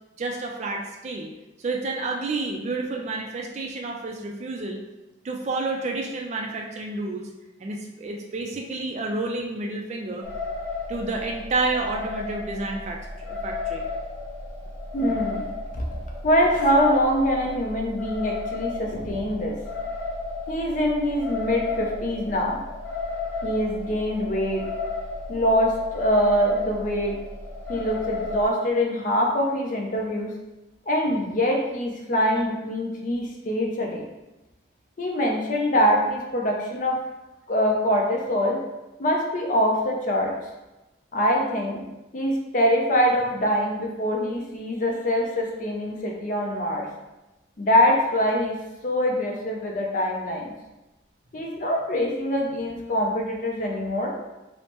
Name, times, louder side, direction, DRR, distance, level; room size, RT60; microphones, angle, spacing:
voice 1, 0.2-1.3 1.6-4.8 5.2-7.3 7.6-10.3 10.9-13.9, right 3 dB, 35° right, 1 dB, 0.3 m, -30 dB
sound 1, 10.2-28.5, left 3 dB, 10° left, 0.9 m, -33 dB
voice 2, 14.9-15.4 15.7-15.8 16.2-19.5 20.5-22.6 23.4-24.6 25.3-27.2 27.7-30.3 30.9-34.0 35.0-37.0 37.5-38.6 39.0-40.3 41.1-41.8 42.1-46.9 47.6-50.5 51.3-54.1, equal, 45° left, 0 dB, 0.5 m, -24 dB
3.2 x 2.0 x 2.9 m, 1.0 s
head